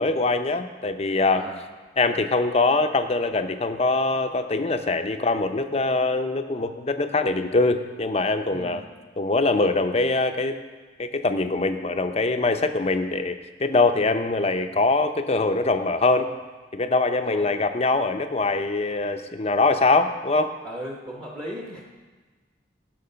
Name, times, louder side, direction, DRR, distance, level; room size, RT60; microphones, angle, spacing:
voice 1, 0.0-1.4 2.0-8.8 9.2-10.6 11.0-16.3 16.7-20.5, left 3 dB, 35° left, 7 dB, 0.7 m, -23 dB
voice 2, 1.3-1.7 8.5-8.9 17.2-17.5 20.6-21.8, equal, 25° right, -2 dB, 1.3 m, -37 dB
17.5 x 5.9 x 5.7 m, 1.3 s
head